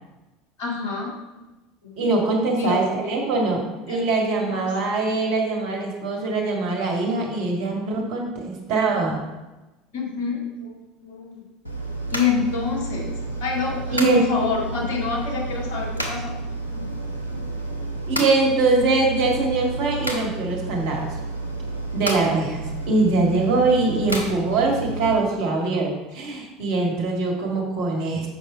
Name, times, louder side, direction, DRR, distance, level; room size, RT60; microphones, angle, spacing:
voice 1, 0.6-1.4 1.8-1.9 2.6-2.8 3.2-3.3 3.9-4.0 4.3-4.7 9.9-11.4 12.1-16.3 16.7-16.9 17.3-17.6, left 5 dB, 60° left, -1 dB, 2.0 m, -28 dB
voice 2, 2.0-3.6 3.9-9.2 13.9-14.3 18.1-21.1 21.9-28.3, right 3 dB, 55° right, 0 dB, 1.8 m, -22 dB
sound 1, 11.6-25.2, right 2 dB, 90° left, 0.9 m, -31 dB
7.0 x 5.4 x 4.5 m, 1.1 s
figure-of-eight pair, 70°, 0 cm